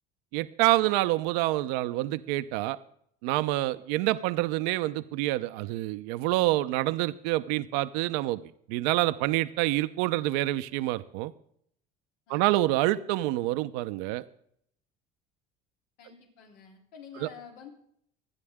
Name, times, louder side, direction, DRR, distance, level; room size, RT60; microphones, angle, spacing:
voice 1, 0.3-2.8 3.2-8.4 8.7-11.3 12.3-14.2 17.2-17.3, right 17 dB, 90° right, 11 dB, 0.8 m, -27 dB
voice 2, 16.0-17.7, left 7 dB, 85° left, 2 dB, 3.4 m, -49 dB
25.0 x 9.9 x 3.7 m, 0.67 s
cardioid pair, 110°, 21 cm